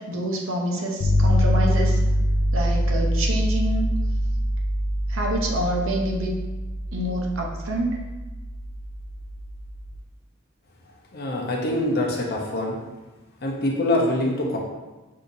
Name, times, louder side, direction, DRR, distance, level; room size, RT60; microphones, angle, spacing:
voice 1, 0.1-2.0 2.5-3.9 5.1-6.4 6.9-8.0, right 1 dB, 65° right, 0 dB, 0.8 m, -27 dB
sound 1, 1.0-10.0, equal, 80° left, 0.5 m, -24 dB
voice 2, 11.1-12.8 13.4-14.6, left 1 dB, 50° left, -2 dB, 0.8 m, -24 dB
6.3 x 2.8 x 2.7 m, 1.2 s
head